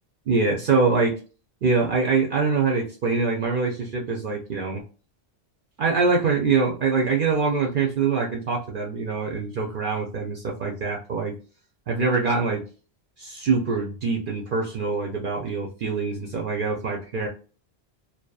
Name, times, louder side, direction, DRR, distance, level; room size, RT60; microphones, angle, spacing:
voice 1, 0.3-1.1 1.6-4.8 5.8-11.3 11.9-12.6 13.2-17.3, right 4 dB, 60° right, 0 dB, 0.6 m, -24 dB
2.7 x 2.3 x 2.2 m, 0.36 s
omnidirectional pair, 1.1 m